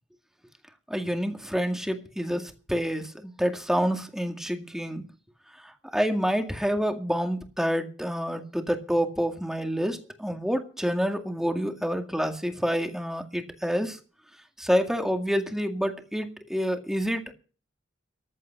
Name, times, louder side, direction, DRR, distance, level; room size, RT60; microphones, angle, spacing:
voice 1, 0.9-5.0 5.9-14.0 14.6-17.3, equal, 5° right, 2.0 m, -28 dB
14.5 x 11.0 x 6.0 m
head